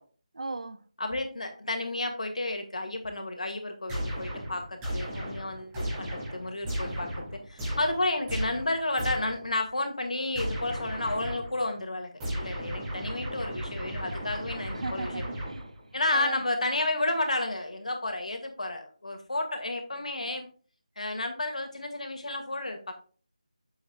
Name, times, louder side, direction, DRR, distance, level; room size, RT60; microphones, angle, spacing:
voice 1, 0.3-0.9 14.7-15.7 16.1-16.4, right 3 dB, 65° right, 0.6 m, -36 dB
voice 2, 1.0-15.2 15.9-20.5 21.0-22.9, left 2 dB, 75° left, 2.0 m, -32 dB
sound 1, 3.9-9.5 10.3-11.6 12.2-15.9, equal, 10° right, 1.7 m, -35 dB
8.2 x 7.3 x 2.3 m
figure-of-eight pair, 170°, 4 cm